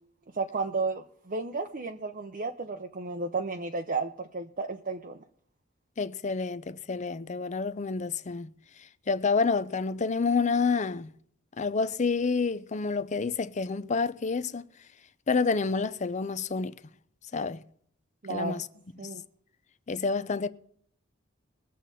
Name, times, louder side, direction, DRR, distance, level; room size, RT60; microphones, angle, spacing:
voice 1, 0.3-5.2 18.2-18.6 19.0-19.2, right 3 dB, 40° right, 0.7 m, -33 dB
voice 2, 6.0-8.5 9.1-11.1 11.6-14.7 15.3-16.8 17.3-17.6 18.3-18.7 19.0-19.1 19.9-20.5, left 4 dB, 35° left, 0.5 m, -28 dB
21.5 x 7.5 x 4.2 m
head